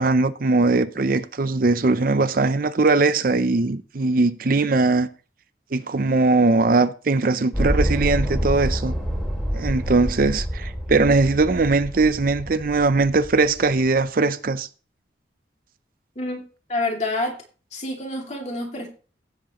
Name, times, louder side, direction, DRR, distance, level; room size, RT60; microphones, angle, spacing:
voice 1, 0.0-5.1 5.7-9.0 9.5-14.7, right 3 dB, 50° right, 0.5 m, -20 dB
sound 1, 7.5-13.8, equal, 5° left, 2.9 m, -27 dB
voice 2, 16.7-17.4 17.7-18.9, left 2 dB, 40° left, 2.5 m, -27 dB
16.0 x 7.4 x 3.0 m
head